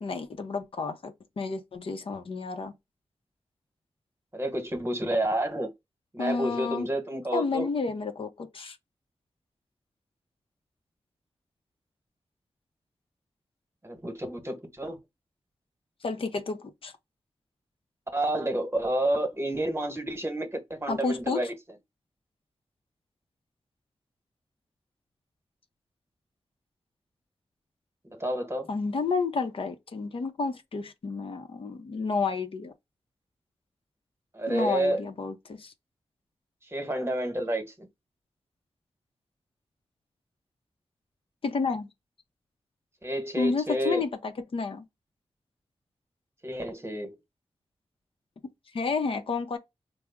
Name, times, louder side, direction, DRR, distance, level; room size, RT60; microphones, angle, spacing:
voice 1, 0.0-2.7 6.2-6.9 7.3-8.8 16.0-16.9 20.9-21.4 28.7-32.7 34.5-35.7 41.4-41.9 43.4-44.8 48.7-49.6, left 4 dB, 65° left, 0.6 m, -30 dB
voice 2, 4.3-5.7 6.1-7.7 13.8-15.0 18.1-21.5 28.1-28.7 34.3-35.0 36.7-37.9 43.0-44.0 46.4-47.1, right 1 dB, 25° right, 1.1 m, -29 dB
3.4 x 2.0 x 3.5 m
cardioid pair, 50°, 10 cm